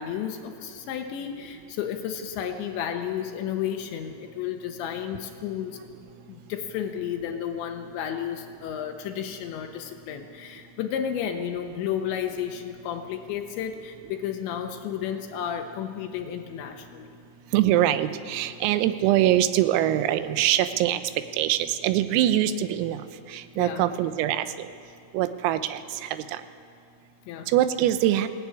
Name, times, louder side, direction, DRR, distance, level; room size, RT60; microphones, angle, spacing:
voice 1, 0.0-5.8 6.3-17.2 23.5-23.8 27.3-27.5, left 9 dB, 75° left, 5 dB, 2.9 m, -32 dB
voice 2, 17.5-21.0 21.3-23.0 23.3-24.7 25.1-26.4 27.5-28.3, right 12 dB, 85° right, 11 dB, 3.6 m, -23 dB
21.0 x 17.5 x 9.7 m, 2.4 s
omnidirectional pair, 6.0 m